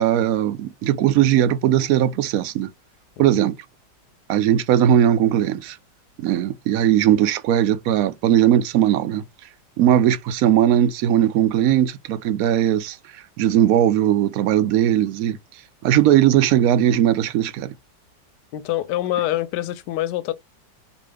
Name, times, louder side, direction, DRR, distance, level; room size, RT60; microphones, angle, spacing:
voice 1, 0.0-2.7 3.2-3.6 4.3-5.8 6.2-9.2 9.8-15.4 15.8-17.7, right 11 dB, 75° right, 0.8 m, -19 dB
voice 2, 18.5-20.3, left 14 dB, 75° left, 1.2 m, -25 dB
4.4 x 3.0 x 3.3 m
omnidirectional pair, 2.0 m